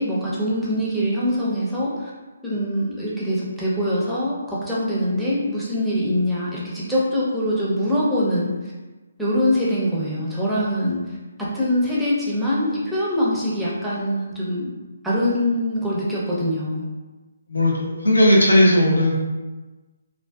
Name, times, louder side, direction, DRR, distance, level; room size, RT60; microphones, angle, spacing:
voice 1, 0.0-2.1 2.4-8.5 9.2-11.0 11.4-14.7 15.0-16.9, equal, 5° right, -8 dB, 0.6 m, -23 dB
voice 2, 17.5-19.2, left 1 dB, 90° left, -3 dB, 0.7 m, -16 dB
2.4 x 2.4 x 2.3 m, 1.2 s
figure-of-eight pair, 150°, 0 cm